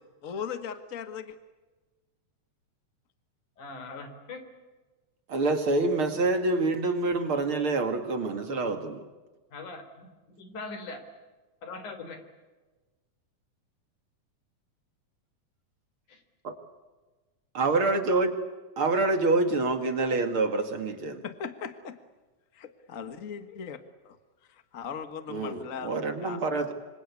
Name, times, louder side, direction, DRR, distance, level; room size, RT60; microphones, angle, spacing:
voice 1, 0.2-1.4 21.2-22.0 22.5-24.2 24.5-26.4, left 7 dB, 45° left, 10 dB, 1.0 m, -39 dB
voice 2, 3.6-4.4 9.5-10.1 10.4-11.0 11.6-12.2 16.1-16.2 23.5-23.6, left 3 dB, 70° left, 9 dB, 5.0 m, -41 dB
voice 3, 5.3-9.0 16.4-16.5 17.5-18.4 18.8-21.2 25.3-26.7, right 3 dB, 45° right, 7 dB, 2.7 m, -26 dB
26.5 x 26.5 x 8.4 m, 1.2 s
omnidirectional pair, 3.7 m